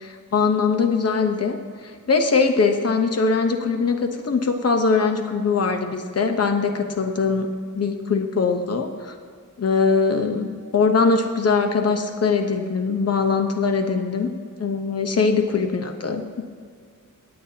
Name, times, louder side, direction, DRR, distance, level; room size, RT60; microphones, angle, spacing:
voice 1, 0.0-1.6 1.8-7.5 7.7-9.1 9.6-14.3 14.6-16.4, left 4 dB, 50° left, 6 dB, 0.9 m, -21 dB
17.5 x 8.6 x 2.9 m, 2.1 s
wide cardioid pair, 135°, 32 cm